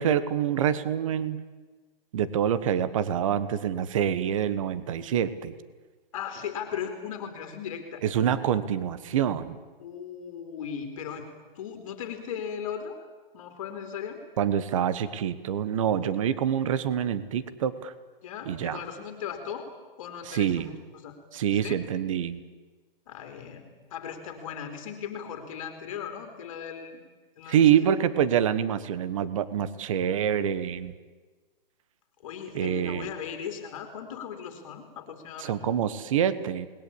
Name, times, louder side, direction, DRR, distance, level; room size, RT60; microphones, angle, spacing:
voice 1, 0.0-1.4 2.1-5.5 8.0-9.6 14.4-17.9 18.5-18.8 20.3-20.7 21.3-22.4 27.5-30.9 32.5-33.1 35.4-36.7, right 9 dB, 35° right, 15 dB, 1.3 m, -26 dB
voice 2, 6.1-8.0 9.8-11.3 11.5-13.0 13.3-14.2 16.0-16.1 18.2-19.7 20.0-21.2 21.5-21.8 23.1-27.0 27.4-27.6 32.2-35.7, left 8 dB, 35° left, 5 dB, 3.2 m, -37 dB
28.5 x 21.0 x 8.6 m, 1.3 s
hypercardioid pair, 165°, 29 cm